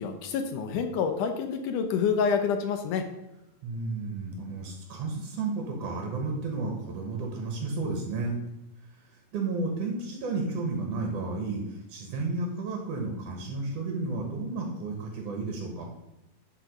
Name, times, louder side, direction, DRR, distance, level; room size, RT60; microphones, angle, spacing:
voice 1, 0.0-3.0, left 6 dB, 75° left, 6 dB, 2.1 m, -27 dB
voice 2, 3.6-8.4 9.3-15.8, right 3 dB, 60° right, 1 dB, 1.9 m, -32 dB
11.0 x 4.0 x 5.2 m, 0.91 s
omnidirectional pair, 4.0 m